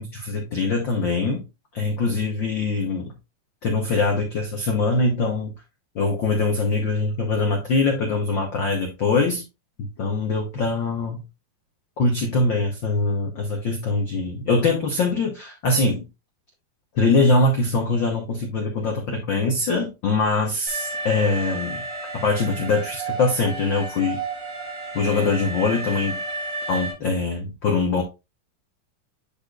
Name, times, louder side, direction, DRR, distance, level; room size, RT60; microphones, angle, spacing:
voice 1, 0.0-1.4 1.7-3.1 3.6-5.5 5.9-9.4 9.8-11.2 12.0-16.0 16.9-21.8 22.1-24.2 24.9-26.2 26.7-28.0, left 3 dB, 85° left, 1.0 m, -23 dB
Alarm, 20.7-26.9, right 3 dB, 75° right, 3.8 m, -32 dB
11.0 x 4.2 x 2.4 m
omnidirectional pair, 3.7 m